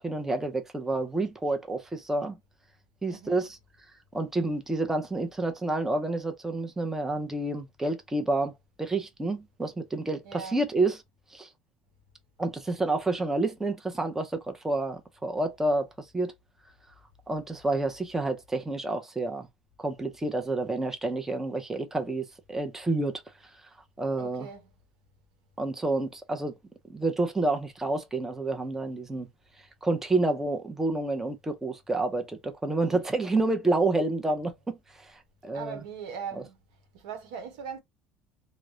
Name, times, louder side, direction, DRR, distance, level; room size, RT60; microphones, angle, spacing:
voice 1, 0.0-2.4 3.0-3.6 4.1-8.5 8.8-11.0 11.3-11.5 12.4-16.3 17.3-19.5 19.8-23.2 24.0-24.5 25.6-26.5 26.9-29.3 29.8-35.8 36.4-36.5, right 2 dB, 10° right, 0.6 m, -29 dB
voice 2, 3.1-3.5 10.2-10.6 24.2-24.6 35.5-36.6 36.9-37.8, right 7 dB, 85° right, 0.9 m, -39 dB
2.3 x 2.1 x 3.0 m
supercardioid pair, 100°, 4 cm